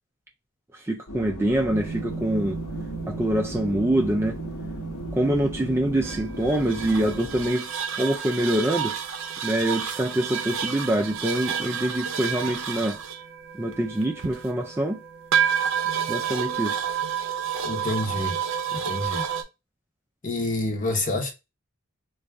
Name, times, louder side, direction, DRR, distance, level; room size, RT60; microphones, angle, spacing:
voice 1, 0.7-2.6 3.1-4.4 5.1-8.9 9.4-13.0 13.5-15.0 16.1-16.8, right 1 dB, 10° right, 0.3 m, -25 dB
sound 1, 1.1-7.5, equal, 65° left, 1.0 m, -37 dB
sound 2, 1.7-19.4, right 7 dB, 60° right, 0.6 m, -30 dB
voice 2, 17.6-18.4 18.7-19.2 20.2-21.3, left 2 dB, 35° left, 0.8 m, -28 dB
3.8 x 2.3 x 3.3 m
head